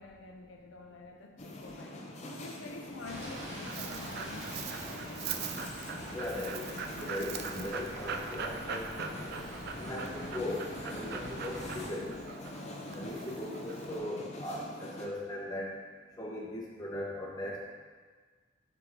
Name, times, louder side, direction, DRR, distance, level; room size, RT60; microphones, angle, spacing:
voice 1, 0.0-2.0 2.3-4.7 6.5-6.6 13.5-13.6, left 3 dB, 85° left, 3 dB, 0.6 m, -48 dB
sound 1, 1.4-15.1, left 1 dB, 35° left, 0.6 m, -44 dB
Bus, 3.0-11.9, right 1 dB, 40° right, 1.2 m, -45 dB
Dog, 3.2-14.0, right 6 dB, 55° right, 0.4 m, -42 dB
voice 2, 6.1-9.4 9.8-12.2 12.9-15.7 16.2-17.8, left 1 dB, 20° left, -4 dB, 1.2 m, -39 dB
6.0 x 4.8 x 3.8 m, 1.4 s
head